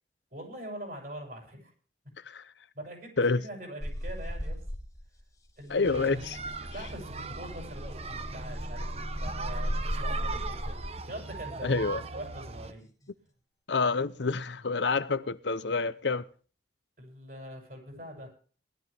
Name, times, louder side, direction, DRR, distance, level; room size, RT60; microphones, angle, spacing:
voice 1, 0.3-1.7 2.7-4.6 5.6-6.2 6.7-11.8 12.1-12.9 17.0-18.3, right 1 dB, 50° right, 7.4 m, -43 dB
sound 1, 3.8-5.2 5.5-10.9 12.7-13.1, equal, 20° left, 2.3 m, -36 dB
voice 2, 5.7-6.4 11.6-12.0 13.7-16.2, left 4 dB, 75° left, 0.8 m, -28 dB
sound 2, 5.8-12.7, right 3 dB, 35° right, 0.9 m, -39 dB
19.0 x 12.5 x 3.5 m
head